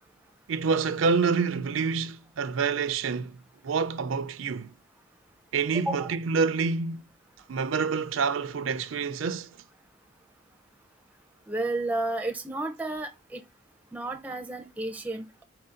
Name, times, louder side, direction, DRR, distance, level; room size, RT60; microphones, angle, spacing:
voice 1, 0.5-3.4 3.6-4.7 5.5-7.1 7.5-9.5, right 5 dB, 90° right, 0.4 m, -27 dB
voice 2, 5.9-6.2 11.5-13.4 13.9-15.4, right 2 dB, 10° right, 0.5 m, -32 dB
4.6 x 2.6 x 3.7 m
head